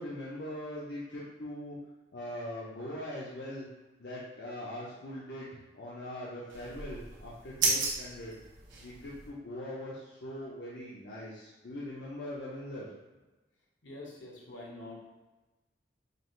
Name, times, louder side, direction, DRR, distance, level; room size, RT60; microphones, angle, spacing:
voice 1, 0.0-1.8 2.1-3.7 4.0-8.3 8.8-12.9, left 1 dB, 65° left, -7 dB, 0.7 m, -41 dB
sound 1, 6.5-9.3, right 3 dB, 85° right, 1.0 m, -34 dB
voice 2, 13.8-15.1, left 2 dB, 80° left, -3 dB, 1.1 m, -45 dB
5.1 x 2.5 x 3.1 m, 1.1 s
head